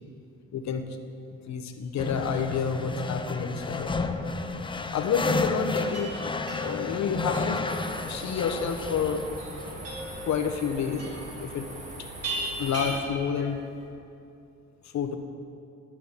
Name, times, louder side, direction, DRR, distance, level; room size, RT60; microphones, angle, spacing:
voice 1, 0.5-0.9 1.3-3.9 4.9-6.3 6.6-9.2 10.3-11.1 11.4-11.7 12.0-12.1 12.6-13.6 14.9-15.2, left 6 dB, 65° left, 7 dB, 1.0 m, -29 dB
sound 1, 2.0-10.6, left 3 dB, 15° left, 0.6 m, -32 dB
sound 2, 5.8-13.9, right 1 dB, 55° right, 3.1 m, -39 dB
sound 3, 7.7-13.0, right 1 dB, 25° right, 1.9 m, -41 dB
12.0 x 6.0 x 7.2 m, 2.5 s
cardioid pair, 90°, 30 cm